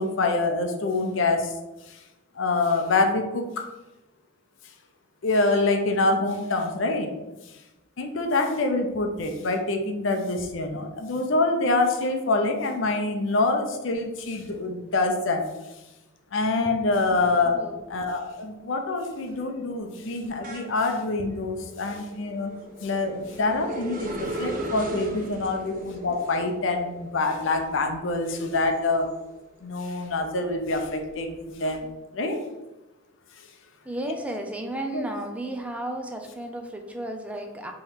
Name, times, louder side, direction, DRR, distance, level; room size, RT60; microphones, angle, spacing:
voice 1, 0.0-1.5 1.9-2.0 2.4-3.4 5.2-7.1 8.0-15.4 16.3-17.6 17.9-22.5 22.8-29.1 29.6-32.4 34.9-35.0, left 3 dB, 65° left, 4 dB, 0.6 m, -25 dB
voice 2, 17.4-17.8 33.8-37.7, right 1 dB, 5° right, 3 dB, 0.4 m, -33 dB
sound 1, 17.7-17.9 18.3-29.6 30.0-31.7, right 2 dB, 40° right, 0.6 m, -38 dB
3.6 x 3.1 x 4.7 m, 1.0 s
head